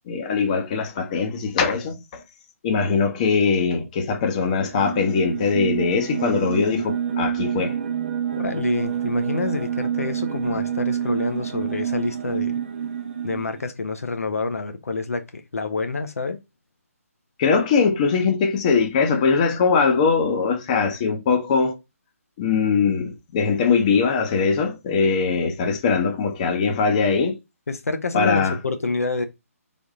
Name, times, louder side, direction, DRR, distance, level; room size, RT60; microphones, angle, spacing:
voice 1, 0.1-2.2 2.6-7.7 17.4-21.7 22.4-27.4 28.1-28.5, left 5 dB, 30° left, 0.8 m, -21 dB
sound 1, 4.4-13.6, right 9 dB, 40° right, 0.6 m, -28 dB
voice 2, 8.4-12.6 13.2-16.4 27.7-29.2, left 4 dB, 70° left, 0.6 m, -27 dB
3.5 x 2.6 x 3.6 m
figure-of-eight pair, 145°, 8 cm